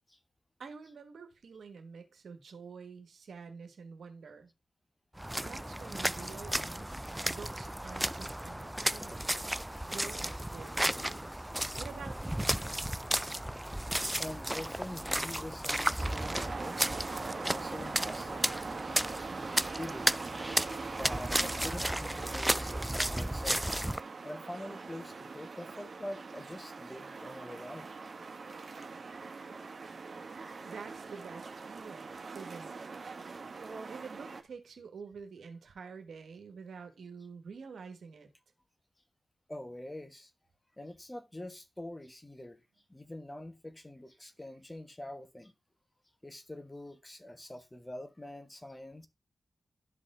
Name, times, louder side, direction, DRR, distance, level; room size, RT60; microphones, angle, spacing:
voice 1, 0.6-4.5 5.4-7.0 7.2-9.3 9.9-11.5 11.8-12.5 30.6-32.8 33.9-38.3, right 5 dB, 80° right, 1.4 m, -48 dB
sound 1, 5.2-24.0, right 1 dB, 10° right, 0.3 m, -34 dB
voice 2, 14.2-16.8 17.1-20.1 20.6-23.6 24.2-28.1 33.2-33.3 39.5-40.3 40.8-42.6 42.9-45.5 46.2-49.1, left 1 dB, 20° left, 1.2 m, -45 dB
sound 2, 16.0-34.4, right 4 dB, 60° right, 1.3 m, -42 dB
12.0 x 4.2 x 3.8 m
cardioid pair, 45°, 0 cm